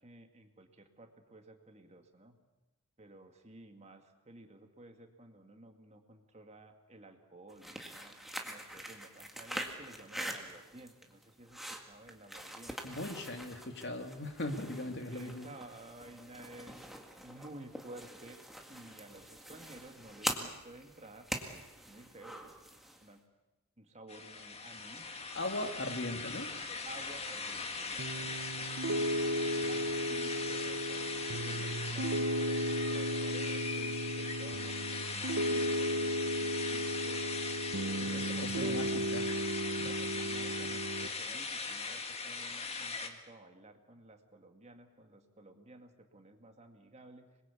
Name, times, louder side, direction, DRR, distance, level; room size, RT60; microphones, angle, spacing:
voice 1, 0.0-2.4 3.0-8.2 8.4-12.8 15.1-17.0 17.2-18.4 18.7-22.7 23.0-23.2 23.8-25.2 26.9-28.4 29.0-37.6 38.0-38.9 39.6-47.3, right 1 dB, 30° right, 5 dB, 2.1 m, -54 dB
sound 1, 7.5-23.1, right 1 dB, ahead, 1.9 m, -44 dB
voice 2, 12.8-15.5 25.3-26.5 38.0-39.4, left 1 dB, 50° left, 6 dB, 2.2 m, -39 dB
sound 2, 24.1-43.1, left 4 dB, 25° left, 1.8 m, -40 dB
Piano, 28.0-41.1, equal, 60° right, 0.9 m, -35 dB
26.0 x 21.5 x 8.5 m, 1.1 s
head